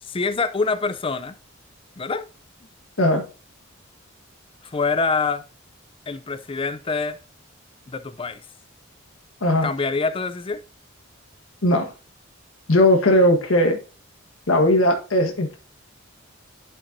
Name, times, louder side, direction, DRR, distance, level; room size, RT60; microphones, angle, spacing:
voice 1, 0.0-1.4 2.0-2.3 4.6-5.4 6.1-7.2 7.9-8.4 9.6-10.6, left 4 dB, 25° left, 0.5 m, -25 dB
voice 2, 3.0-3.3 9.4-9.7 11.6-11.9 12.7-13.8 14.5-15.6, left 1 dB, 85° left, 1.6 m, -18 dB
11.5 x 5.4 x 2.7 m
head